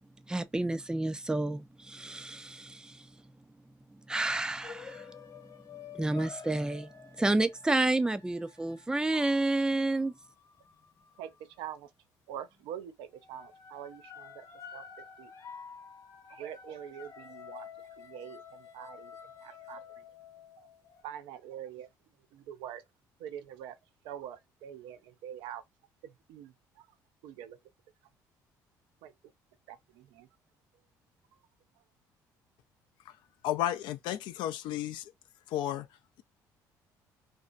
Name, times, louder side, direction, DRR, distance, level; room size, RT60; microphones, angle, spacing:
voice 1, 0.3-3.1 4.1-5.1 5.9-10.1, right 2 dB, 10° right, 0.4 m, -30 dB
sound 1, 4.6-11.6 12.4-12.7 13.1-21.0, left 7 dB, 50° left, 1.0 m, -50 dB
voice 2, 11.6-11.9 12.3-14.4 14.7-14.8 15.2-15.3 16.3-17.7 18.0-19.2 19.4-19.8 21.0-21.9 22.3-22.8 23.2-23.7 24.0-25.6 26.3-26.5 27.2-27.6 29.0-29.1 29.7-30.3, right 10 dB, 85° right, 0.4 m, -44 dB
voice 3, 33.4-35.0 35.5-35.9, left 12 dB, 75° left, 0.4 m, -32 dB
2.6 x 2.1 x 2.4 m
supercardioid pair, 80°, 8 cm